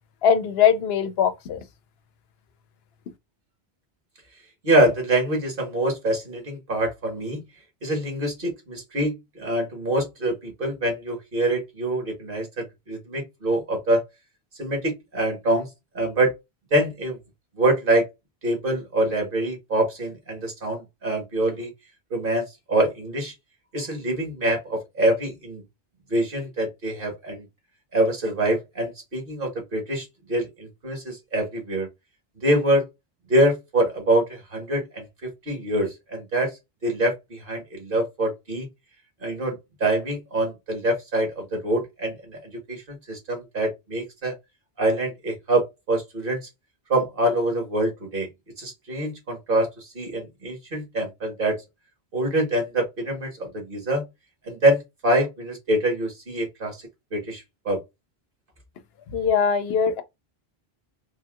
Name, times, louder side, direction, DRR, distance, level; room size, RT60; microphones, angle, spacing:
voice 1, 0.2-1.6 59.1-60.0, left 7 dB, 80° left, 0.8 m, -21 dB
voice 2, 4.6-7.4 7.8-14.0 14.6-15.7 15.9-16.3 16.7-17.2 17.6-18.1 18.4-21.7 22.1-23.3 23.7-25.6 26.1-27.4 27.9-31.9 32.4-32.8 33.3-36.5 36.8-38.7 39.2-44.3 44.8-46.4 46.9-48.3 48.6-49.7 49.9-51.6 52.1-54.0 54.5-56.8 57.1-57.8, right 1 dB, 60° right, 1.5 m, -25 dB
3.5 x 2.7 x 2.3 m
omnidirectional pair, 1.0 m